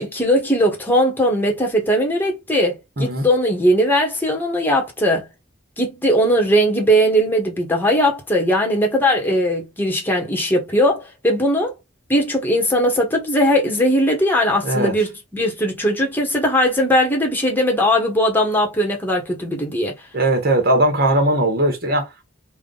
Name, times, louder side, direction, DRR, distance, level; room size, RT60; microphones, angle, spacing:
voice 1, 0.0-5.2 5.8-11.7 12.1-19.9, equal, 10° left, 1.3 m, -19 dB
voice 2, 14.6-14.9 20.1-22.2, right 1 dB, 50° right, 1.4 m, -19 dB
3.5 x 2.5 x 3.9 m
head